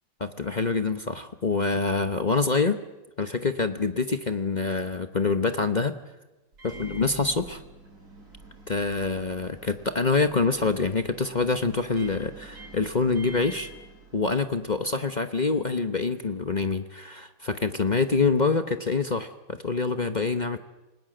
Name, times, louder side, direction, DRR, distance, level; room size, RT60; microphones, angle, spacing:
voice 1, 0.2-2.8 3.2-5.9 6.6-7.6 8.7-13.7 14.1-20.6, left 4 dB, 40° left, 8 dB, 0.6 m, -26 dB
Microwave oven, 6.5-14.7, right 2 dB, 50° right, 8.6 m, -46 dB
28.5 x 19.5 x 7.8 m, 1.1 s
omnidirectional pair, 2.1 m